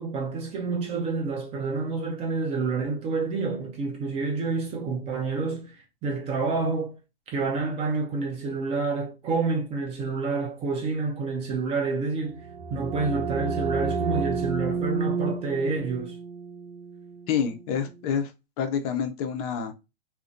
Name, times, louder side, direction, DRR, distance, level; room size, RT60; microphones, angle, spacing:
voice 1, 0.0-7.0 7.3-16.2, right 4 dB, 20° right, 0.4 m, -28 dB
sound 1, 12.2-17.8, right 5 dB, 90° right, 0.5 m, -31 dB
voice 2, 17.3-18.3 18.6-19.7, left 7 dB, 40° left, 0.5 m, -27 dB
2.3 x 2.1 x 2.5 m
hypercardioid pair, 120°, 31 cm